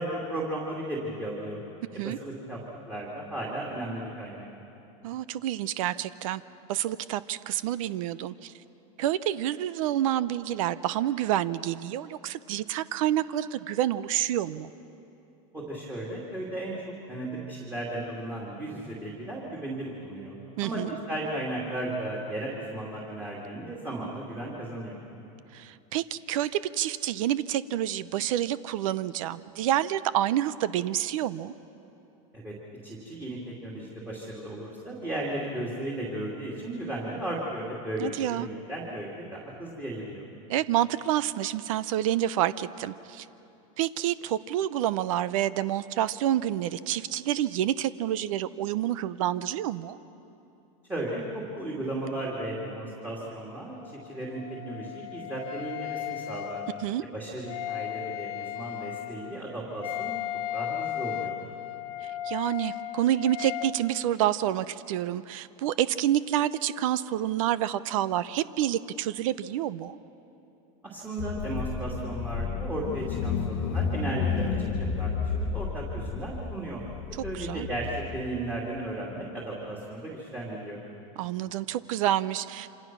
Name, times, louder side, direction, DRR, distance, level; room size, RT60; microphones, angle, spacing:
voice 1, 0.0-1.6 1.9-2.6 2.9-4.4 15.5-16.8 17.1-20.4 20.6-25.0 32.3-32.5 32.8-40.3 50.9-56.6 57.1-60.1 60.5-61.4 70.8-76.8 77.1-80.8, right 1 dB, 10° right, -5 dB, 2.6 m, -35 dB
voice 2, 5.0-6.4 6.7-8.5 9.0-14.7 20.6-20.9 25.5-31.5 38.0-38.5 40.5-43.3 43.8-50.0 56.8-57.0 62.0-70.0 77.3-77.7 81.2-82.7, right 12 dB, 70° right, 16 dB, 0.7 m, -28 dB
Wind instrument woodwind instrument, 53.7-63.8, left 13 dB, 85° left, 1.5 m, -36 dB
Car / Engine, 71.2-78.2, left 5 dB, 40° left, 1.0 m, -31 dB
27.5 x 26.5 x 6.1 m, 2.9 s
supercardioid pair, 165°, 18 cm